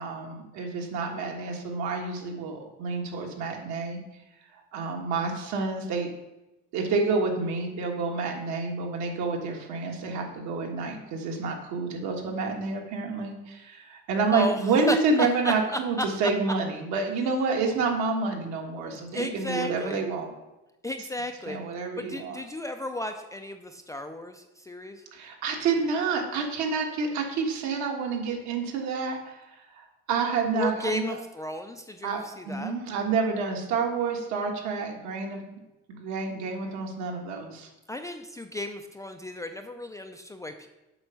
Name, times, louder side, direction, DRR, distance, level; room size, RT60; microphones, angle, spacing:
voice 1, 0.0-4.0 4.7-6.1 6.7-20.4 21.5-22.4 25.1-29.4 29.7-31.1 32.0-35.4 35.9-37.7, right 4 dB, 70° right, 2 dB, 1.7 m, -29 dB
voice 2, 14.9-16.1 19.1-20.0 20.8-21.6 22.0-25.0 30.5-32.7 37.9-40.7, left 1 dB, 10° left, 5 dB, 0.3 m, -34 dB
7.9 x 5.2 x 5.7 m, 0.99 s
cardioid pair, 135°, 30 cm